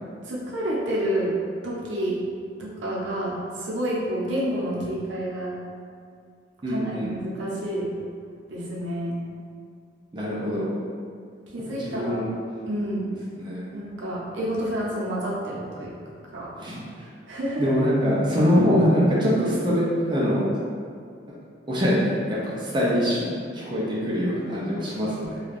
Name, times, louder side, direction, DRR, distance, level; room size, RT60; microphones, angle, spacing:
voice 1, 0.2-1.4 1.6-2.2 2.6-5.6 6.7-7.9 8.5-9.2 11.5-12.3 12.6-13.1 13.7-15.9 16.3-16.5 17.3-17.8, equal, 80° right, -6 dB, 0.6 m, -29 dB
voice 2, 6.6-7.1 10.1-10.7 11.8-12.3 13.4-13.7 16.6-17.0 17.6-20.5 21.7-22.2 22.4-25.4, equal, 25° right, -7 dB, 0.4 m, -23 dB
2.4 x 2.3 x 3.2 m, 2.2 s
head